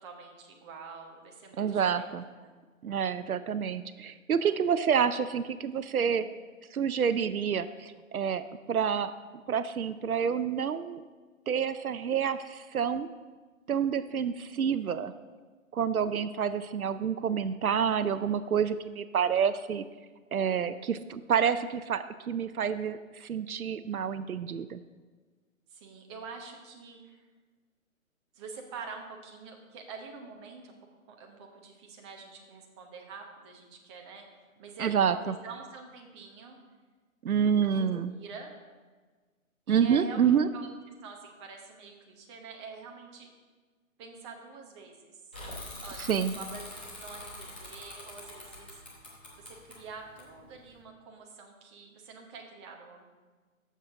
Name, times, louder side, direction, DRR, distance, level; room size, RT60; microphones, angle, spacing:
voice 1, 0.0-2.1 2.4-2.5 4.4-4.6 25.7-27.3 28.3-30.7 31.1-34.2 34.6-36.6 37.7-37.9 38.2-38.5 39.7-40.7 41.0-43.3 44.0-45.2 45.8-48.8 49.3-53.0, right 4 dB, 20° right, 1 dB, 1.0 m, -46 dB
voice 2, 1.6-2.2 2.8-6.3 6.7-9.1 9.5-11.0 11.5-13.1 13.7-15.1 15.7-19.8 20.3-24.8 34.8-35.3 37.2-38.1 39.7-40.5 46.0-46.3, right 7 dB, 85° right, 13 dB, 0.6 m, -28 dB
Bicycle / Mechanisms, 45.3-50.8, left 1 dB, 10° left, 0.5 m, -44 dB
13.5 x 6.8 x 3.7 m, 1.4 s
figure-of-eight pair, 140°, 42 cm